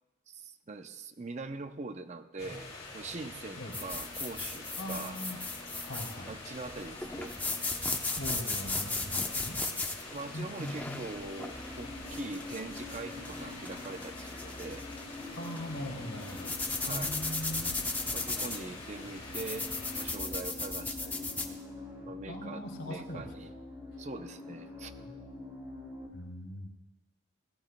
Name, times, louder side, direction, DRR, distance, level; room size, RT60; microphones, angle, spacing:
voice 1, 0.3-5.2 6.3-7.4 10.1-14.9 16.9-17.2 18.1-21.3 22.0-23.5 24.0-24.9, right 3 dB, 35° right, 9 dB, 0.6 m, -43 dB
sound 1, 2.4-20.1, left 3 dB, 30° left, 4.2 m, -46 dB
sound 2, 3.7-21.5, left 3 dB, 10° left, 0.7 m, -37 dB
voice 2, 4.8-5.4 5.8-6.3 8.1-9.6 10.3-11.0 15.3-16.5 16.9-17.7 22.3-23.3 26.1-26.8, equal, 90° left, 2 dB, 2.6 m, -40 dB
sound 3, 11.5-26.1, left 2 dB, 15° right, 2.5 m, -46 dB
21.5 x 16.0 x 2.2 m, 1.1 s
head